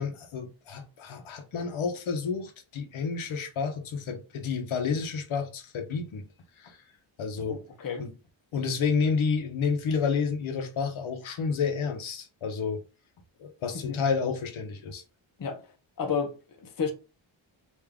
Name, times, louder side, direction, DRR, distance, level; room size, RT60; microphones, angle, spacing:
voice 1, 0.0-6.2 6.6-6.8 7.2-7.6 8.0-8.1 8.5-12.8 13.4-15.0, left 5 dB, 80° left, 0.9 m, -30 dB
voice 2, 7.5-8.1 13.9-14.0 15.4-15.7 16.0-16.9, left 6 dB, 45° left, 0.8 m, -32 dB
3.5 x 2.7 x 3.5 m
wide cardioid pair, 145°, 48 cm